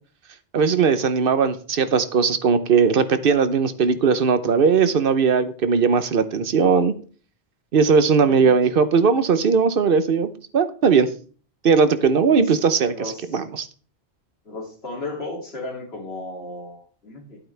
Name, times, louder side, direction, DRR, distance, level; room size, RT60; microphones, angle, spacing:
voice 1, 0.5-6.9 7.7-10.3 10.5-11.1 11.6-12.9 13.3-13.7, right 5 dB, 55° right, 11 dB, 0.9 m, -18 dB
voice 2, 8.3-8.6 12.3-12.6 12.9-13.4 14.4-17.4, left 2 dB, 65° left, -2 dB, 2.9 m, -34 dB
12.0 x 8.4 x 3.3 m, 0.41 s
omnidirectional pair, 1.1 m